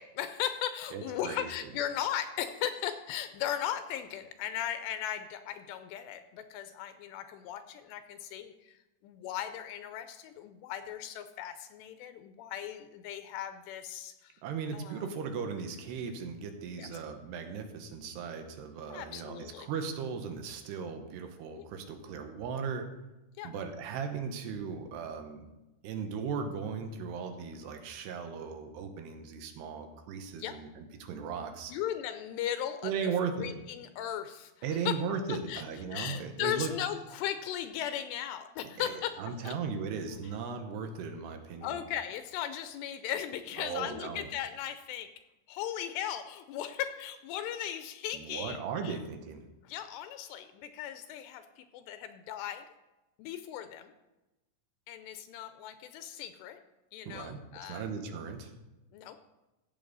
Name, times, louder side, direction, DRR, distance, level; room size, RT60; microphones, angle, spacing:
voice 1, 0.0-8.8 9.0-14.3 14.7-15.0 16.8-16.9 18.9-19.7 21.6-21.7 23.4-23.5 30.4-30.6 31.7-33.0 33.4-34.5 34.9-35.0 35.3-35.6 35.9-39.1 39.4-39.5 41.6-45.1 45.5-49.0 49.6-52.6 53.2-53.9 54.9-56.6 56.9-57.8 58.9-59.2, left 10 dB, 80° left, 10 dB, 2.7 m, -37 dB
voice 2, 0.9-1.7 14.4-22.9 23.4-25.4 25.8-31.7 32.8-33.5 34.6-36.7 38.8-41.9 43.6-44.3 48.1-49.4 57.1-58.5, right 6 dB, 75° right, 6 dB, 3.0 m, -37 dB
15.0 x 8.0 x 4.0 m, 1.0 s
omnidirectional pair, 5.0 m